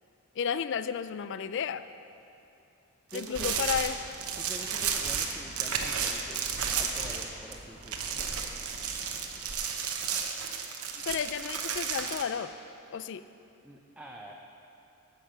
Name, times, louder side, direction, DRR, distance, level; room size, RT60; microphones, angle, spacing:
voice 1, 0.4-1.8 3.1-4.1 10.9-12.5 12.9-13.2, left 7 dB, 55° left, 13 dB, 0.4 m, -32 dB
voice 2, 3.1-3.6 4.4-6.4 6.8-8.1 13.6-14.3, right 1 dB, 5° right, -1 dB, 0.6 m, -46 dB
sound 1, 3.1-7.6 7.8-12.2, right 7 dB, 80° right, 0.9 m, -32 dB
sound 2, 3.8-9.6, right 1 dB, 25° right, 1.0 m, -50 dB
9.7 x 6.8 x 7.6 m, 2.8 s
head